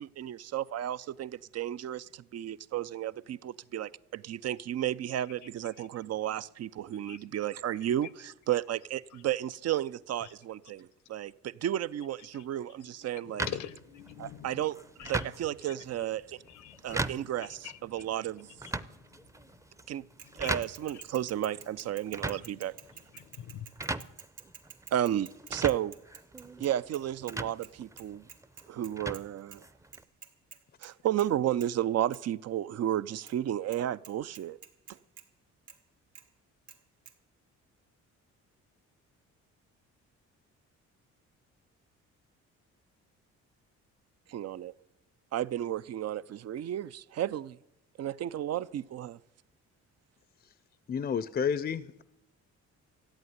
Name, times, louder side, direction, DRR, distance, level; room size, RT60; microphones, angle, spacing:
voice 1, 0.0-13.5 14.2-14.8 15.1-16.4 16.8-18.5 19.9-20.0 20.4-22.7 24.9-25.9 26.6-28.3 28.7-29.6 30.8-34.6 44.3-44.7 45.3-47.6 48.0-49.2, right 11 dB, 55° right, 0.5 m, -33 dB
voice 2, 6.9-7.2 7.8-7.9 9.1-9.2 10.2-10.3 12.3-12.5 12.8-12.9 13.2-14.7 15.0-15.2 15.6-16.0 16.3-19.6 20.2-20.5 20.9-21.0 22.2-22.5 22.9-23.8, left 11 dB, 80° left, 0.9 m, -47 dB
sound 1, 13.4-30.0, right 2 dB, 10° right, 0.6 m, -40 dB
Bicycle / Mechanisms, 20.2-27.4 27.6-27.7 28.0-29.2 29.5-29.6 29.9-30.9 31.2-31.3 31.6-31.7 32.1-32.2 33.3-33.4 33.7-33.8 34.0-35.2 35.7-35.8 36.1-36.3 36.7-36.8 37.1-37.2, right 8 dB, 75° right, 1.8 m, -50 dB
voice 3, 50.9-52.0, left 7 dB, 35° left, 0.6 m, -30 dB
14.0 x 8.7 x 9.4 m
cardioid pair, 90°, 30 cm